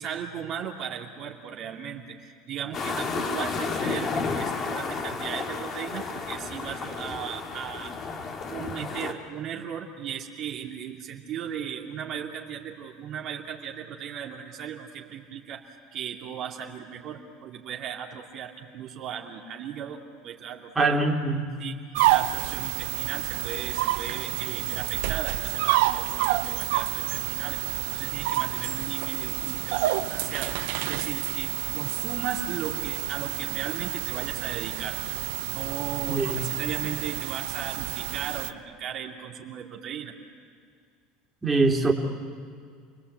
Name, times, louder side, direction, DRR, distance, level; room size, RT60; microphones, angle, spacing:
voice 1, 0.0-8.1 8.5-21.0 21.6-21.8 22.0-30.5 30.8-35.0 35.5-40.1, right 8 dB, 50° right, -1 dB, 2.5 m, -37 dB
sound 1, 2.7-9.1, left 4 dB, 40° left, 2.4 m, -32 dB
voice 2, 20.7-21.5 36.1-36.4 41.4-41.9, right 3 dB, 15° right, -1 dB, 3.2 m, -23 dB
sound 2, 21.9-38.5, right 16 dB, 75° right, 0.8 m, -29 dB
29.0 x 20.0 x 8.1 m, 2.2 s
hypercardioid pair, 95°, 0 cm